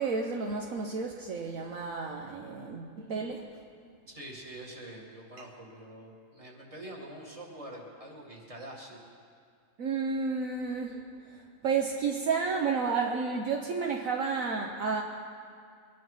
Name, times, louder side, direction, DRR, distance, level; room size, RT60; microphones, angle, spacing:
voice 1, 0.0-3.5 9.8-15.0, right 5 dB, 65° right, 1 dB, 1.3 m, -31 dB
voice 2, 4.1-9.0, right 1 dB, 20° right, -2 dB, 2.3 m, -45 dB
23.5 x 10.5 x 5.6 m, 2.2 s
omnidirectional pair, 1.6 m